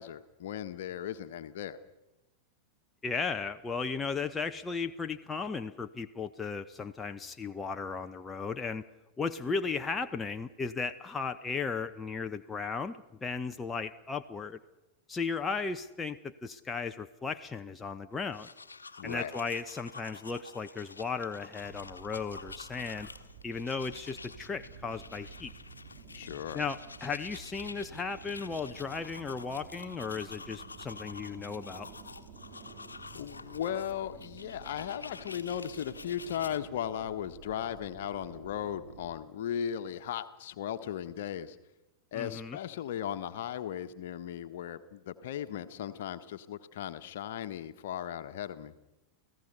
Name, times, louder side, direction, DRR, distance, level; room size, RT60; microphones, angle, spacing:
voice 1, 0.0-1.8 19.0-19.3 26.1-26.6 33.1-41.6 42.1-48.7, left 10 dB, 55° left, 10 dB, 1.4 m, -37 dB
voice 2, 3.0-8.8 9.2-14.6 15.1-18.5 19.0-23.1 23.4-25.5 26.5-31.9 42.1-42.6, left 5 dB, 15° left, 7 dB, 0.9 m, -36 dB
sound 1, 18.2-36.6, left 4 dB, 75° left, 1.2 m, -49 dB
sound 2, 21.6-39.1, right 5 dB, 50° right, 4.1 m, -51 dB
29.0 x 16.5 x 6.9 m, 1.0 s
figure-of-eight pair, 90°, 0 cm